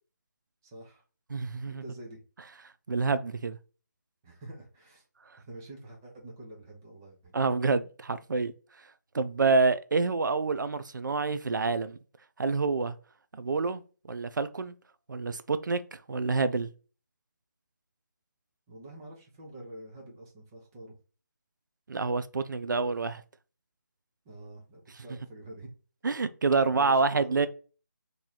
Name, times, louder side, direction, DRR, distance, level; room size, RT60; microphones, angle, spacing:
voice 1, 0.6-1.0 1.7-2.2 4.2-5.0 5.4-7.3 18.7-20.9 24.3-25.7 26.7-27.5, right 1 dB, 10° right, 0.5 m, -46 dB
voice 2, 1.3-1.8 2.9-3.6 7.3-8.5 9.1-12.0 12.4-13.0 13.3-13.8 14.1-14.7 15.1-16.7 21.9-23.2 26.0-27.5, right 4 dB, 80° right, 0.4 m, -27 dB
3.0 x 2.7 x 3.8 m
figure-of-eight pair, 170°, 10 cm